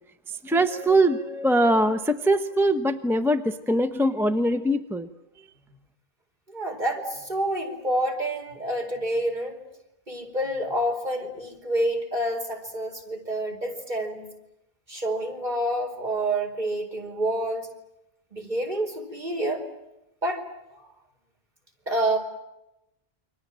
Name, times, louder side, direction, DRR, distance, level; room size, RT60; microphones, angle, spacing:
voice 1, 0.4-5.1, right 1 dB, ahead, 8 dB, 1.0 m, -22 dB
voice 2, 6.5-9.6 10.1-14.3 14.9-17.7 18.3-19.6 20.2-20.4 20.7-20.9 21.9-22.2, right 1 dB, 45° right, 3 dB, 4.8 m, -28 dB
29.0 x 24.5 x 7.6 m, 0.90 s
omnidirectional pair, 1.1 m